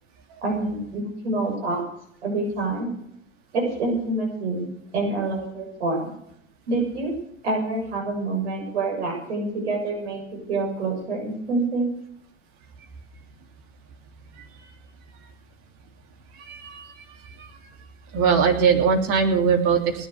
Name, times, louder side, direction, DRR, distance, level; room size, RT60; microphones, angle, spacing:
voice 1, 0.4-1.8 2.2-2.9 3.5-4.7 4.9-6.1 6.7-7.2 7.4-11.9, right 2 dB, 55° right, 0 dB, 7.4 m, -27 dB
voice 2, 16.4-16.9 17.4-17.5 18.1-20.1, right 6 dB, 35° right, 2 dB, 3.2 m, -21 dB
19.0 x 10.5 x 6.8 m, 0.72 s
figure-of-eight pair, 100°, 39 cm